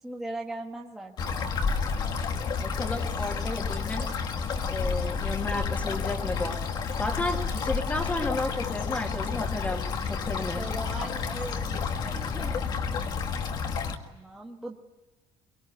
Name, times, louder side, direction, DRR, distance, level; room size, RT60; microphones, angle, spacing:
voice 1, 0.0-1.5 10.6-12.6 14.0-14.7, right 2 dB, 5° right, 0 dB, 1.5 m, -39 dB
sound 1, 1.2-14.0, left 5 dB, 40° left, 1.9 m, -30 dB
voice 2, 2.6-4.1 4.7-6.6 7.0-9.8 10.1-10.6, left 2 dB, 15° left, 3 dB, 2.5 m, -32 dB
23.5 x 22.0 x 9.9 m, 1.1 s
cardioid pair, 170°, 11 cm